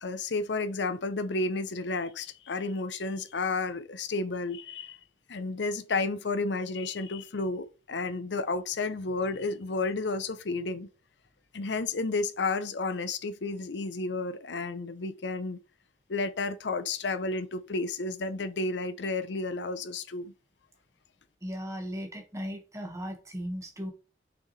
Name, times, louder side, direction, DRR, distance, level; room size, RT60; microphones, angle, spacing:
voice 1, 0.0-5.0 5.3-10.9 11.5-15.6 16.1-20.3, left 3 dB, 80° left, 0.7 m, -32 dB
voice 2, 21.4-23.9, equal, 15° right, 1.5 m, -37 dB
6.8 x 6.1 x 3.2 m
head